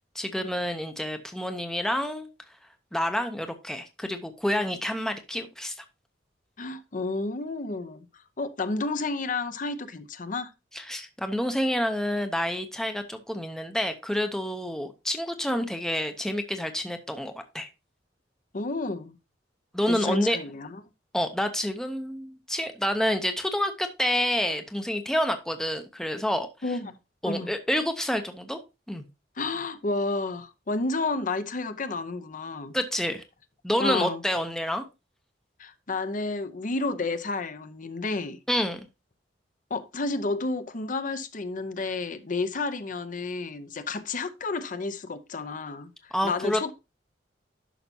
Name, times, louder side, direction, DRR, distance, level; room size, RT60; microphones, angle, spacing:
voice 1, 0.1-2.3 2.9-5.8 10.7-17.7 19.7-20.4 21.1-26.5 27.2-28.6 28.9-29.1 32.7-33.2 33.6-34.8 38.5-38.8 46.1-46.7, equal, 5° left, 0.7 m, -28 dB
voice 2, 6.6-8.1 8.4-10.5 18.5-19.2 19.9-20.8 26.6-26.9 27.3-27.5 29.4-32.7 33.8-34.2 35.6-38.4 39.7-46.7, left 3 dB, 45° left, 0.7 m, -31 dB
11.0 x 5.7 x 2.7 m
head